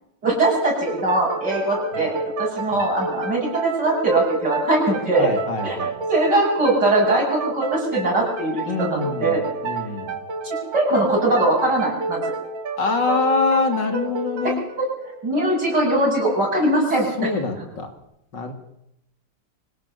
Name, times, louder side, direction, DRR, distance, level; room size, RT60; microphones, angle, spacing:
voice 1, 0.2-5.3 5.6-5.8 6.1-9.4 10.7-12.2 15.2-17.3, right 2 dB, 60° right, -2 dB, 8.2 m, -21 dB
sound 1, 0.9-16.2, right 4 dB, 85° right, 2.5 m, -30 dB
voice 2, 5.2-5.9 8.6-10.2 12.8-14.7 17.2-17.9 18.3-18.5, left 4 dB, 70° left, 6 dB, 3.2 m, -25 dB
25.0 x 17.0 x 6.9 m, 0.78 s
omnidirectional pair, 2.0 m